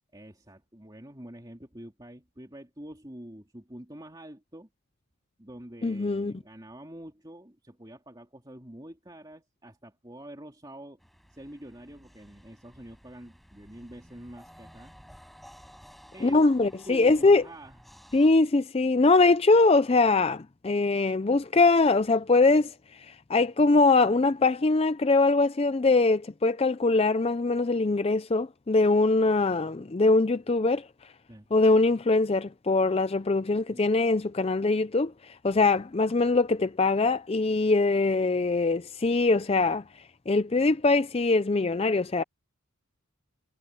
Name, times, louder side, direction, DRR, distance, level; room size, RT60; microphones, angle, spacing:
voice 1, 0.1-4.7 5.4-11.0 11.3-14.9 16.1-16.5 16.9-17.8 31.3-31.5 33.7-33.9, right 1 dB, 20° right, 3.1 m, -46 dB
voice 2, 5.8-6.3 16.2-17.4 18.1-30.9 31.5-39.8 40.3-42.2, left 3 dB, 25° left, 0.4 m, -22 dB
sound 1, 11.0-18.3, equal, ahead, 5.6 m, -54 dB
head